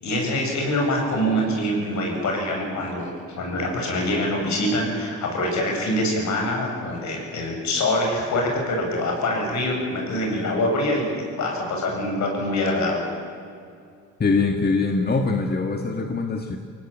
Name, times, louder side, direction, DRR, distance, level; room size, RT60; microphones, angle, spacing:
voice 1, 0.0-13.0, left 1 dB, 70° left, 1 dB, 7.9 m, -25 dB
voice 2, 14.2-16.6, left 4 dB, 30° left, 4 dB, 1.9 m, -23 dB
24.5 x 18.0 x 9.1 m, 2.3 s
cardioid pair, 90°, 30 cm